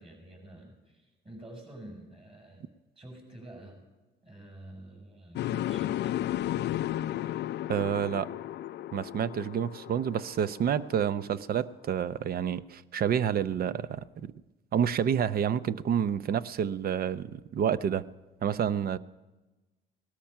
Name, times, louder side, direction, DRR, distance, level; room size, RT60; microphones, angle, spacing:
voice 1, 0.0-2.7 3.0-3.8 4.2-6.1, right 1 dB, 30° right, 2 dB, 7.4 m, -48 dB
sound 1, 5.4-11.4, left 13 dB, 65° left, 0.4 m, -34 dB
voice 2, 7.7-8.3 8.9-14.3 14.7-18.0 18.4-19.0, right 8 dB, 50° right, 15 dB, 0.7 m, -29 dB
18.5 x 13.0 x 5.7 m, 1.1 s
cardioid pair, 95°, 19 cm